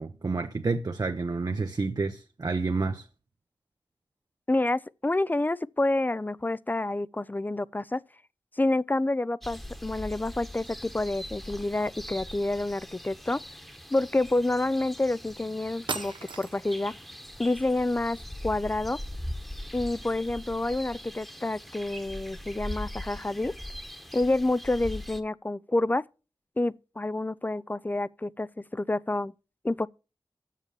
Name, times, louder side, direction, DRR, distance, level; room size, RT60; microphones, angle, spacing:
voice 1, 0.0-3.1, right 3 dB, 55° right, 0.7 m, -29 dB
voice 2, 4.5-8.0 8.6-13.4 13.9-16.9 17.4-18.2 18.4-19.0 19.7-23.6 24.1-26.0 26.6-29.3 29.6-29.9, left 2 dB, 20° left, 0.4 m, -28 dB
sound 1, 9.4-25.2, equal, ahead, 1.2 m, -41 dB
sound 2, 15.3-15.4 15.9-16.8, right 4 dB, 85° right, 0.8 m, -36 dB
7.5 x 7.1 x 6.5 m
cardioid pair, 50°, 8 cm